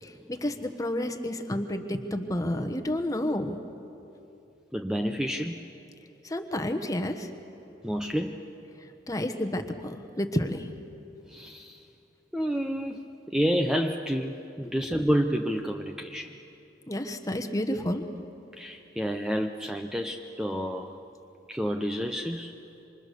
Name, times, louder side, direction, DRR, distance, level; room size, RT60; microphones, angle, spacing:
voice 1, 0.0-3.6 6.2-7.3 9.1-10.7 16.9-18.0, left 1 dB, 20° left, 6 dB, 1.2 m, -30 dB
voice 2, 4.7-5.6 7.8-8.4 11.3-11.8 12.3-13.0 13.3-16.3 18.5-20.9 21.5-22.5, equal, 5° right, 4 dB, 0.6 m, -29 dB
27.5 x 26.0 x 6.8 m, 2.9 s
head